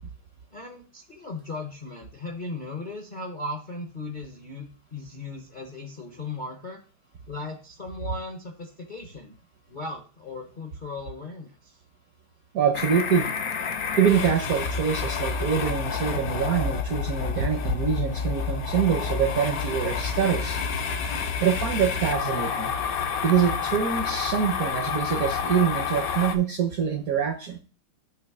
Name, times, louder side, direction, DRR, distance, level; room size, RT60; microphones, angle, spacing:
voice 1, 0.5-6.8 7.3-9.4 9.7-11.8, left 2 dB, 45° left, 1 dB, 0.6 m, -37 dB
voice 2, 12.5-13.3 14.0-20.6 21.4-22.7 23.2-27.6, right 7 dB, 60° right, 4 dB, 0.9 m, -25 dB
sound 1, 12.7-26.4, left 6 dB, 65° left, 0.9 m, -29 dB
7.3 x 3.0 x 6.0 m, 0.36 s
omnidirectional pair, 2.3 m